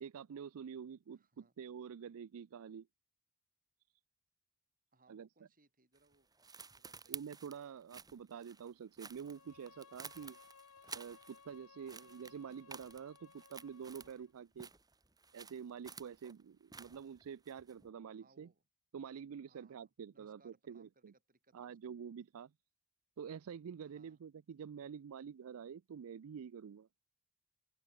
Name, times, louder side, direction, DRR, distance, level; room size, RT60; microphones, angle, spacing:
voice 1, 0.0-2.9 5.1-5.3 7.1-10.4 10.9-14.7 15.3-18.5 18.9-21.1 21.5-22.5 23.2-26.9, right 7 dB, 70° right, 0.4 m, -48 dB
voice 2, 1.1-1.5 4.9-7.3 11.8-12.0 18.2-18.6 19.4-22.0 23.9-24.2, right 3 dB, 40° right, 7.6 m, -71 dB
sound 1, 5.9-11.6 11.9-14.2 14.5-17.9, right 5 dB, 15° right, 2.5 m, -53 dB
Bowed string instrument, 9.1-14.3, left 5 dB, 75° left, 1.5 m, -62 dB
open air
head